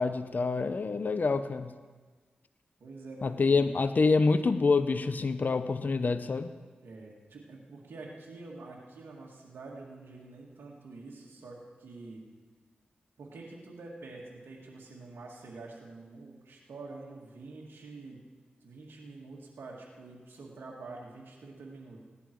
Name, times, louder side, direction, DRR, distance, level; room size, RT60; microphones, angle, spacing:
voice 1, 0.0-1.7 3.2-6.5, left 4 dB, 55° left, 11 dB, 0.7 m, -26 dB
voice 2, 2.8-3.6 6.8-12.2 13.2-18.2 18.6-22.0, right 3 dB, 80° right, -2 dB, 2.0 m, -47 dB
16.5 x 11.0 x 4.6 m, 1.4 s
cardioid pair, 45°, 4 cm